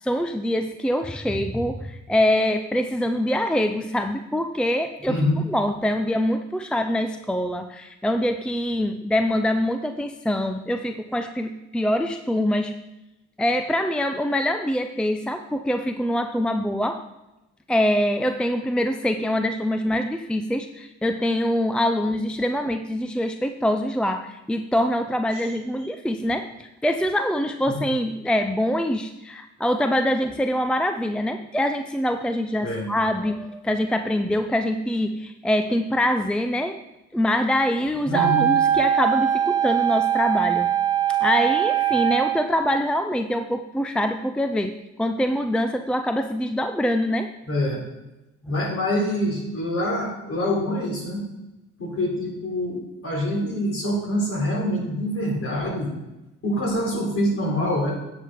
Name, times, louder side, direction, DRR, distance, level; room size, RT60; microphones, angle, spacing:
voice 1, 0.0-5.2 5.5-12.8 13.4-17.0 17.7-36.8 37.1-40.7 41.2-47.3, left 1 dB, 5° left, 7 dB, 0.5 m, -24 dB
voice 2, 5.1-5.4 27.7-27.8 32.6-32.9 38.1-38.5 47.5-47.8 48.5-51.2 51.8-55.9 56.4-57.9, left 1 dB, 45° left, -1 dB, 4.1 m, -25 dB
Wind instrument woodwind instrument, 38.1-42.5, right 10 dB, 25° right, 1.8 m, -21 dB
9.8 x 7.3 x 5.1 m, 0.98 s
cardioid pair, 90°, 30 cm